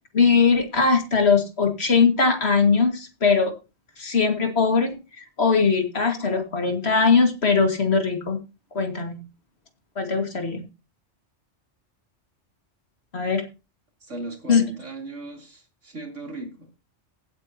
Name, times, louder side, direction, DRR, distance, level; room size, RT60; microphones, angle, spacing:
voice 1, 0.1-3.5 4.0-4.9 5.2-8.4 8.7-9.2 10.0-10.6 13.1-13.5 14.5-14.6, left 5 dB, 60° left, 5 dB, 2.3 m, -20 dB
voice 2, 14.0-16.8, right 2 dB, 80° right, 2 dB, 3.8 m, -37 dB
16.5 x 8.6 x 2.9 m, 0.28 s
omnidirectional pair, 1.2 m